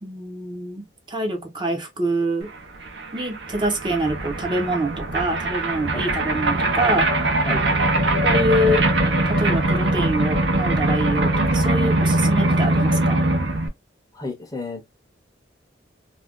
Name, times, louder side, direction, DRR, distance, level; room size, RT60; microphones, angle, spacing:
voice 1, 0.0-2.5 3.1-7.1 8.2-8.9 9.2-13.2, right 1 dB, 25° right, 0.6 m, -25 dB
sound 1, 2.5-2.6 2.8-13.7, right 2 dB, 70° right, 0.7 m, -21 dB
voice 2, 14.1-15.0, left 2 dB, 20° left, 0.6 m, -32 dB
2.5 x 2.2 x 3.4 m
head